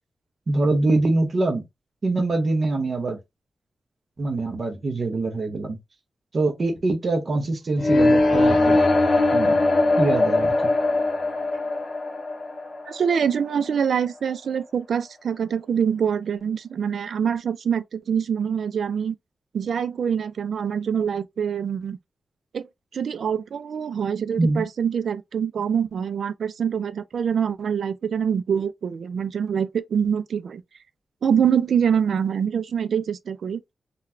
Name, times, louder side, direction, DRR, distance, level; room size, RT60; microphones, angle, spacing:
voice 1, 0.5-1.6 2.0-3.2 4.2-5.8 6.3-8.8 9.3-9.6 10.0-10.7 24.4-24.6, right 2 dB, 40° right, 0.7 m, -24 dB
sound 1, 7.8-13.7, left 2 dB, 45° left, 0.6 m, -21 dB
voice 2, 12.9-19.2 19.5-22.0 22.5-22.7 22.9-30.6 31.2-33.6, right 7 dB, 75° right, 0.3 m, -25 dB
3.8 x 2.2 x 2.5 m
wide cardioid pair, 160°, 0 cm